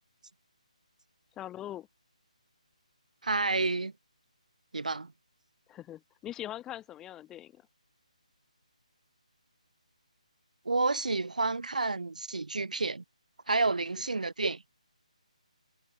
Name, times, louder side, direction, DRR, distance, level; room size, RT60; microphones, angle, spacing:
voice 1, 1.4-1.9 5.7-7.6, left 12 dB, 10° left, 1.1 m, -42 dB
voice 2, 3.2-3.9 4.7-5.1 10.7-13.0 13.5-14.6, right 3 dB, 85° right, 0.5 m, -30 dB
figure-of-eight pair, 155°, 4 cm